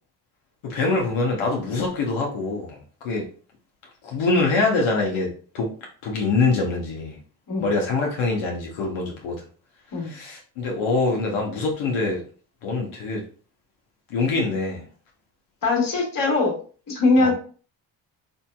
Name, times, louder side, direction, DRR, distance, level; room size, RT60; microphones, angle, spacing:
voice 1, 0.6-2.8 3.0-3.3 4.0-5.3 5.5-5.7 6.0-7.2 7.6-9.4 10.0-12.2 12.6-13.2 14.1-14.8 17.2-17.3, left 3 dB, 75° left, 0 dB, 1.0 m, -24 dB
voice 2, 15.6-16.6 16.9-17.3, left 3 dB, 40° left, 0 dB, 1.4 m, -21 dB
3.5 x 2.8 x 2.2 m, 0.40 s
supercardioid pair, 55°, 48 cm